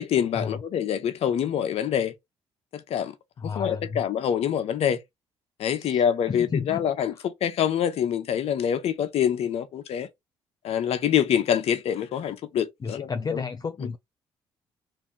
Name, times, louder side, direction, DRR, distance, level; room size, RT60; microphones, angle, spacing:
voice 1, 0.0-2.1 2.7-5.0 5.6-10.1 10.6-13.4 13.8-13.9, left 9 dB, 65° left, 0.7 m, -26 dB
voice 2, 3.4-4.0 5.7-6.8 12.8-14.0, left 5 dB, 35° left, 0.5 m, -32 dB
3.0 x 2.7 x 3.6 m
supercardioid pair, 60°, 11 cm